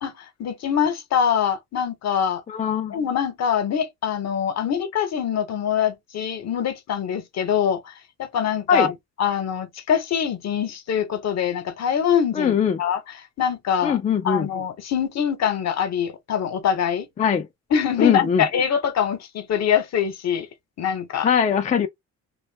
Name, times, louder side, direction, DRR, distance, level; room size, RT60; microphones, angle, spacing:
voice 1, 0.0-2.4 2.9-8.9 9.2-13.0 13.4-14.0 14.2-17.1 17.7-20.5 20.8-21.3, left 8 dB, 60° left, 0.8 m, -24 dB
voice 2, 2.5-3.0 8.7-8.9 12.4-12.8 13.8-14.5 17.2-17.5 18.0-18.4 21.2-21.9, left 7 dB, 25° left, 0.4 m, -21 dB
2.6 x 2.2 x 3.2 m
cardioid pair, 90°, 30 cm